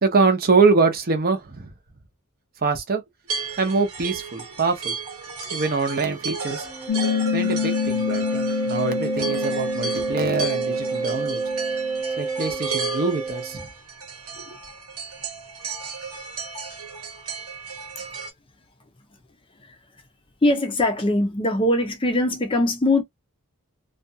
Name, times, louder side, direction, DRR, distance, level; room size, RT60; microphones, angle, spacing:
voice 1, 0.0-1.7 2.6-3.0 3.6-5.0 5.5-6.7 7.3-11.4 12.2-13.7 14.5-14.6, right 4 dB, 45° right, 0.7 m, -23 dB
sound 1, 3.3-18.3, right 4 dB, 80° right, 1.2 m, -34 dB
Wind instrument woodwind instrument, 6.6-13.7, right 4 dB, ahead, 0.8 m, -29 dB
Piano, 6.9-12.0, left 8 dB, 80° left, 0.4 m, -28 dB
voice 2, 20.4-23.0, left 1 dB, 25° left, 0.5 m, -21 dB
2.5 x 2.2 x 2.7 m
head